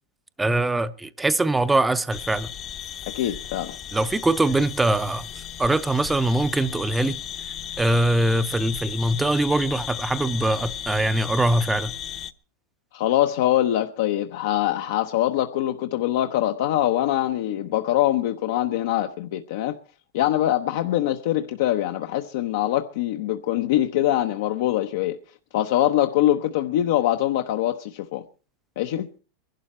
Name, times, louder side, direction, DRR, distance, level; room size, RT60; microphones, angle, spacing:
voice 1, 0.4-2.5 3.9-5.3 5.6-7.2 7.8-11.9, right 2 dB, 10° right, 0.6 m, -22 dB
sound 1, 2.1-12.3, left 10 dB, 30° left, 0.8 m, -35 dB
voice 2, 3.1-3.8 12.9-19.8 20.1-25.2 25.5-28.2 28.8-29.1, left 13 dB, 70° left, 0.9 m, -23 dB
22.0 x 12.0 x 4.3 m
supercardioid pair, 140°, 0 cm